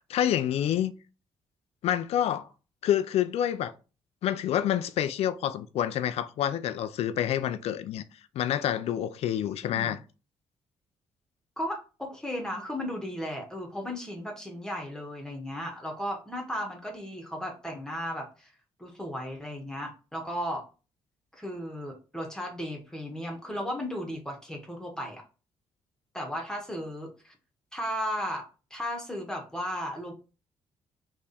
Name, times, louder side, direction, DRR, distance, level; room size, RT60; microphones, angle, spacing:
voice 1, 0.1-0.9 1.8-2.5 2.8-3.7 4.2-8.0 8.3-10.0, left 10 dB, 75° left, 0.4 m, -27 dB
voice 2, 11.6-18.5 18.8-20.6 21.3-25.2 26.1-27.3 27.7-28.4 28.7-30.1, equal, 5° left, 1.4 m, -35 dB
3.5 x 3.2 x 4.2 m
cardioid pair, 70°, 11 cm